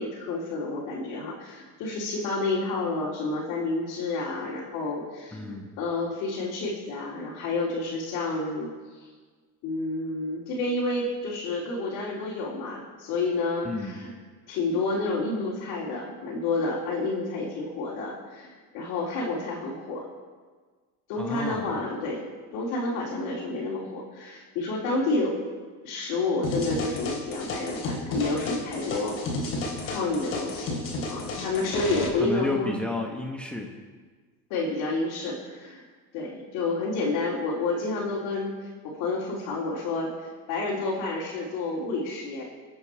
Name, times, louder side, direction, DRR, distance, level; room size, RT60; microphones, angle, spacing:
voice 1, 0.0-8.7 9.6-14.1 14.5-20.1 21.1-22.2 22.5-25.4 25.8-29.2 29.8-30.8 31.1-32.7 34.5-35.8 36.1-38.5 38.8-42.4, left 3 dB, 55° left, -6 dB, 3.5 m, -29 dB
voice 2, 5.3-5.7 13.6-14.0 21.2-21.7 32.2-33.8, left 3 dB, 5° left, 1 dB, 1.1 m, -31 dB
sound 1, 26.4-32.1, left 2 dB, 35° left, 3.7 m, -32 dB
23.0 x 8.8 x 4.6 m, 1.4 s
supercardioid pair, 140°, 39 cm